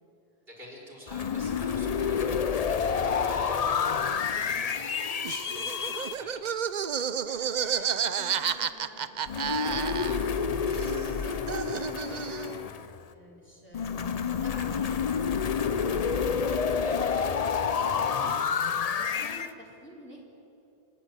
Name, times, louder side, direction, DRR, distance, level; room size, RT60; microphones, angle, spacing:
voice 1, 0.5-3.6 4.3-6.4 16.8-17.3, equal, 70° right, -4 dB, 5.0 m, -47 dB
sound 1, 1.1-6.2 9.3-13.0 13.7-19.5, left 6 dB, 45° left, 0.7 m, -29 dB
Laughter, 5.2-10.4 10.7-12.6, right 7 dB, 50° right, 0.7 m, -31 dB
voice 2, 7.2-12.8 13.1-14.0 14.2-18.4 18.9-20.2, equal, 10° left, -4 dB, 3.6 m, -50 dB
27.0 x 10.5 x 8.9 m, 2.8 s
omnidirectional pair, 1.0 m